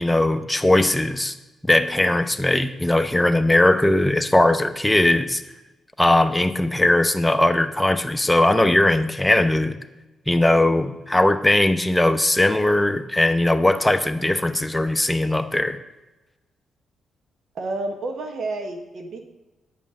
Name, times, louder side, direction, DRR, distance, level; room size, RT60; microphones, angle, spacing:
voice 1, 0.0-1.3 1.6-5.4 6.0-9.8 10.3-15.8, left 1 dB, 10° left, 9 dB, 0.8 m, -19 dB
voice 2, 17.5-19.2, right 2 dB, 60° right, 4 dB, 1.1 m, -30 dB
8.5 x 5.4 x 6.3 m, 1.1 s
hypercardioid pair, 45°, 0 cm